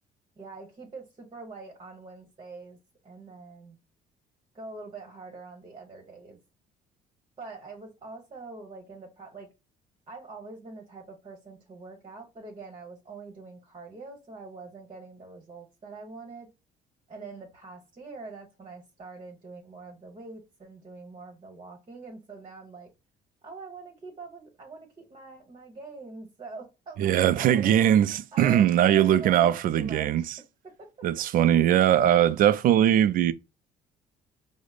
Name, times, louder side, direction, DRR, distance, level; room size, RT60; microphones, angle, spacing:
voice 1, 0.4-2.8 3.0-3.8 4.5-6.4 7.4-9.5 10.1-16.5 17.1-22.9 23.4-27.8 28.3-30.3 30.6-30.7, right 3 dB, 30° right, 1.1 m, -44 dB
voice 2, 27.0-30.2 31.0-33.3, right 11 dB, 55° right, 0.4 m, -21 dB
4.8 x 2.1 x 2.4 m
cardioid pair, 110°, 17 cm